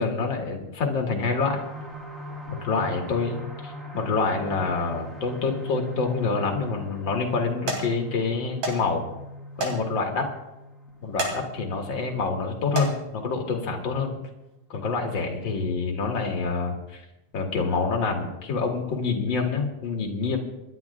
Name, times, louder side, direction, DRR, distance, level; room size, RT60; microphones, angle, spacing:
voice 1, 0.0-1.6 2.5-9.1 9.6-10.3 11.0-14.1 14.7-17.0 17.3-20.4, left 4 dB, 45° left, 1 dB, 2.2 m, -27 dB
sound 1, 1.5-15.0 15.5-15.6 16.0-16.1, left 1 dB, ahead, 2.8 m, -41 dB
sound 2, 6.2-6.7 7.2-7.4 7.7-7.8 8.6-8.8 9.1-9.2 9.6-9.8 10.2-10.3 11.0-11.4 11.9-12.1 12.6-12.9 13.9-14.0 14.5-14.6, right 2 dB, 65° right, 4.0 m, -29 dB
27.5 x 12.0 x 2.4 m, 0.93 s
omnidirectional pair, 3.4 m